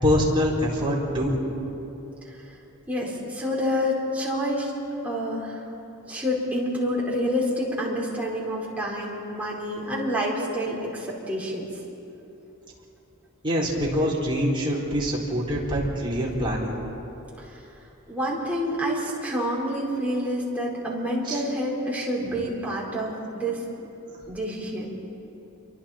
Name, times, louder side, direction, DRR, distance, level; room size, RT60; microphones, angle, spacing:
voice 1, 0.0-1.4 13.4-16.7 21.3-21.4, equal, 20° right, -5 dB, 4.4 m, -24 dB
voice 2, 2.2-2.6 2.9-4.7 5.0-5.7 6.1-11.7 17.4-17.6 18.1-23.6 24.3-25.0, equal, 5° right, -5 dB, 4.7 m, -28 dB
28.5 x 24.0 x 4.5 m, 3.0 s
head